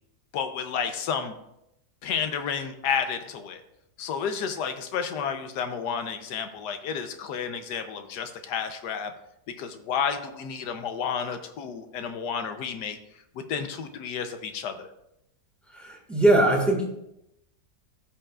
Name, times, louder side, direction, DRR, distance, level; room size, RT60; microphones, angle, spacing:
voice 1, 0.3-1.3 2.0-3.6 4.0-9.1 9.5-13.0 13.3-14.9, left 7 dB, 80° left, 8 dB, 1.4 m, -31 dB
voice 2, 15.7-16.9, right 1 dB, ahead, -2 dB, 1.7 m, -21 dB
15.5 x 5.6 x 2.4 m, 0.82 s
omnidirectional pair, 1.8 m